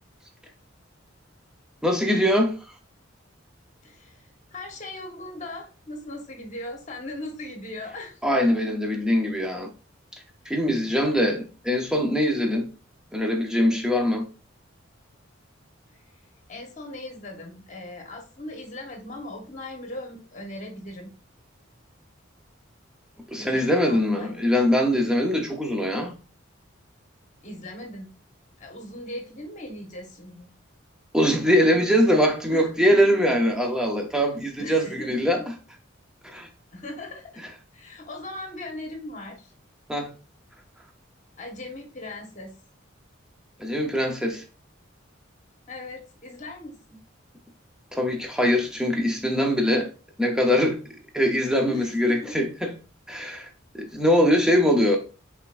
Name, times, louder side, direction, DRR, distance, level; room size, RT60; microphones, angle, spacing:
voice 1, 1.8-2.6 8.2-9.7 10.5-12.7 13.1-14.2 23.3-26.2 31.1-35.5 36.2-36.5 39.9-40.1 43.6-44.4 47.9-49.9 50.2-50.8 51.1-52.7 53.1-53.5 53.7-55.0, equal, 5° right, 0.7 m, -22 dB
voice 2, 3.8-8.2 10.4-10.6 15.9-16.0 16.5-21.1 23.3-24.4 27.4-28.1 28.6-30.5 32.5-33.2 34.6-35.5 36.7-37.4 37.7-39.5 41.4-42.5 45.7-47.0 51.7-52.4, left 1 dB, 40° left, 1.2 m, -39 dB
5.0 x 3.5 x 2.5 m
head